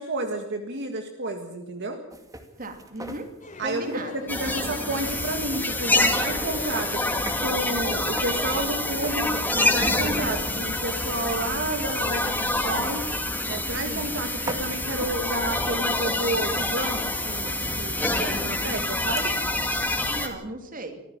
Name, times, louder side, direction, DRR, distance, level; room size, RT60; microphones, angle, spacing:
voice 1, 0.0-2.0 3.6-7.0 7.4-13.1 13.5-19.3, right 1 dB, 60° right, 5 dB, 1.9 m, -31 dB
sound 1, 2.1-7.5 7.8-9.7 9.9-10.4 10.8-19.3, right 1 dB, 15° right, 2.3 m, -42 dB
voice 2, 2.6-3.3 3.6-4.2 4.8-4.9 13.8-14.2 20.0-21.0, right 2 dB, 40° right, 7 dB, 2.7 m, -36 dB
sound 2, 3.4-9.8, left 2 dB, 40° left, 3.0 m, -42 dB
sound 3, 4.3-20.3, left 2 dB, 10° left, 2.3 m, -27 dB
25.0 x 14.5 x 7.4 m, 0.91 s
head